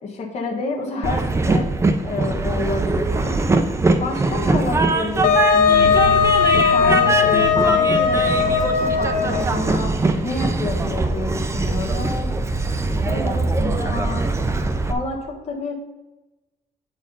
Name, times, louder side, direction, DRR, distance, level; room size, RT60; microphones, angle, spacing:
voice 1, 0.0-1.7 2.0-3.4 3.9-8.3 8.6-9.9 10.2-12.3 13.1-14.3 14.9-15.7, left 3 dB, 45° left, 0 dB, 1.3 m, -28 dB
Train, 1.0-14.9, right 3 dB, 15° right, 0.5 m, -22 dB
Wind instrument woodwind instrument, 5.2-9.6, left 7 dB, 60° left, 0.9 m, -18 dB
sound 1, 5.7-10.8, right 6 dB, 65° right, 0.7 m, -34 dB
8.1 x 4.3 x 5.2 m, 1.1 s
cardioid pair, 155°, 16 cm